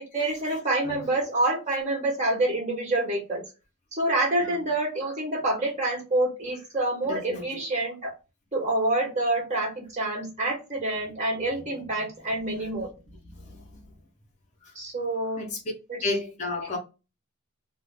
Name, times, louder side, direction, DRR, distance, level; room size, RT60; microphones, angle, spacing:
voice 1, 0.1-3.4 3.9-8.1 8.5-12.9 14.7-15.4 15.9-16.0, right 2 dB, 30° right, 1.0 m, -27 dB
voice 2, 7.0-7.6 12.4-12.7 13.2-13.8 14.6-14.7 15.4-15.6 16.0-16.8, left 3 dB, 35° left, 0.6 m, -33 dB
2.3 x 2.0 x 3.3 m
head